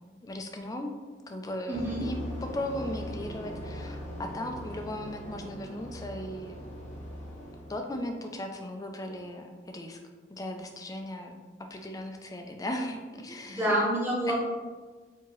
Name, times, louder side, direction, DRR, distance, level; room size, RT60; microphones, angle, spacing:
voice 1, 0.2-0.9 1.3-6.6 7.7-10.0 10.3-11.4 11.7-13.8 14.2-14.3, left 1 dB, 20° left, 4 dB, 0.3 m, -37 dB
sound 1, 1.7-7.8, equal, 35° left, 0.8 m, -40 dB
voice 2, 1.7-2.0 13.5-14.3, right 1 dB, 10° right, -6 dB, 1.0 m, -27 dB
4.6 x 2.8 x 3.0 m, 1.4 s
head